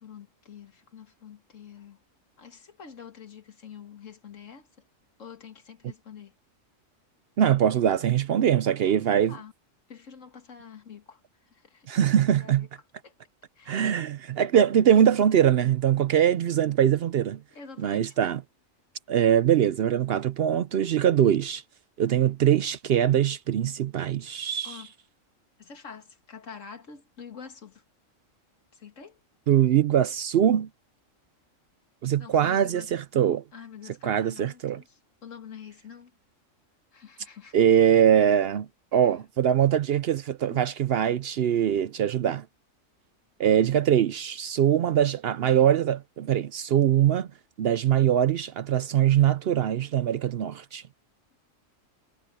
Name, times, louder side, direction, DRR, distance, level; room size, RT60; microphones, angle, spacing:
voice 1, 0.0-2.0 2.4-4.7 5.2-6.3 9.0-9.5 9.9-11.2 11.5-12.7 13.0-13.1 13.6-14.0 17.5-18.2 24.6-24.9 25.6-27.8 28.7-29.2 32.2-32.9 33.5-36.1 36.9-37.6 40.5-40.6, left 7 dB, 70° left, 2.1 m, -46 dB
voice 2, 7.4-9.3 11.9-12.7 13.7-17.4 17.8-18.4 19.1-21.6 22.0-24.8 29.5-30.7 32.0-33.4 34.0-34.8 37.5-42.4 43.4-47.3 47.6-50.8, right 9 dB, 60° right, 0.7 m, -22 dB
omnidirectional pair, 1.3 m